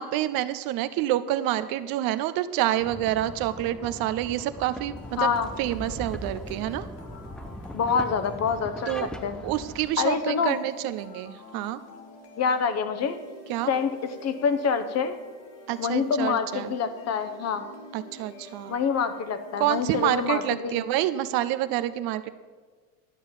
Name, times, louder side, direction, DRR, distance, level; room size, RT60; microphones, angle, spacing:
voice 1, 0.0-5.3 5.6-6.9 8.9-9.1 9.4-11.8 13.5-13.7 15.7-16.7 17.9-18.8 19.6-22.3, right 13 dB, 50° right, 13 dB, 0.7 m, -28 dB
sound 1, 2.8-9.9, equal, ahead, 0.4 m, -40 dB
sound 2, 5.0-21.0, left 2 dB, 60° left, 2.3 m, -48 dB
voice 2, 5.2-5.5 7.7-9.4 10.0-10.6 12.4-13.2 13.7-15.2 15.8-17.6 18.7-20.8, left 6 dB, 35° left, 10 dB, 1.0 m, -26 dB
11.5 x 6.2 x 7.2 m, 1.5 s
supercardioid pair, 110°, 46 cm